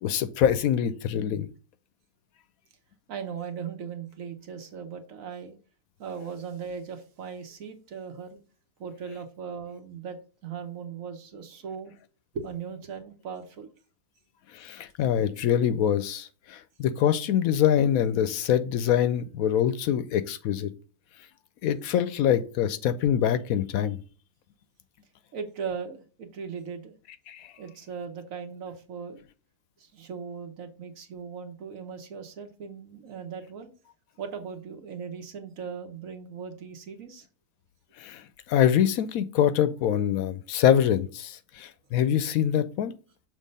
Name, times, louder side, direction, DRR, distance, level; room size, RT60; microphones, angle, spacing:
voice 1, 0.0-1.5 14.5-20.7 21.6-24.0 27.3-27.5 38.0-38.2 38.5-42.9, left 9 dB, 75° left, 13 dB, 1.0 m, -24 dB
voice 2, 3.1-5.5 6.0-8.4 8.8-10.2 10.4-11.9 12.3-13.7 25.3-26.9 27.6-29.2 29.8-33.7 34.2-37.3, right 6 dB, 65° right, 7 dB, 1.3 m, -38 dB
6.5 x 3.2 x 5.3 m, 0.38 s
omnidirectional pair, 1.6 m